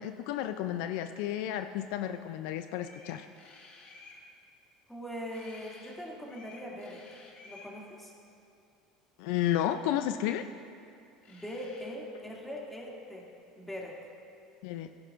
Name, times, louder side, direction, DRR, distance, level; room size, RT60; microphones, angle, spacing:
voice 1, 0.0-3.3 9.2-10.4 14.6-14.9, left 11 dB, 75° left, 9 dB, 0.4 m, -32 dB
sound 1, 2.8-4.2 5.3-6.0 6.2-7.7 9.3-9.7 10.9-11.0 11.2-11.9, left 3 dB, 50° left, 2.1 m, -53 dB
voice 2, 4.9-7.0 7.4-8.1 11.3-13.3 13.6-14.0, equal, 5° left, -3 dB, 2.4 m, -41 dB
15.5 x 10.5 x 2.5 m, 2.5 s
hypercardioid pair, 90°, 3 cm